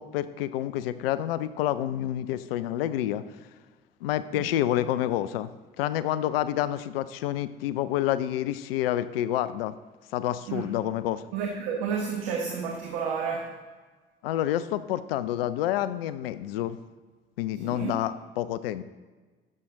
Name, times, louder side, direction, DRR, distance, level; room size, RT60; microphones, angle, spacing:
voice 1, 0.0-3.2 4.0-5.5 5.8-9.7 10.1-11.2 14.2-16.8 17.4-18.8, left 12 dB, 75° left, 14 dB, 0.5 m, -28 dB
voice 2, 11.3-13.6 17.6-18.0, right 6 dB, 70° right, 2 dB, 1.2 m, -31 dB
14.0 x 7.5 x 3.8 m, 1.4 s
figure-of-eight pair, 45°, 29 cm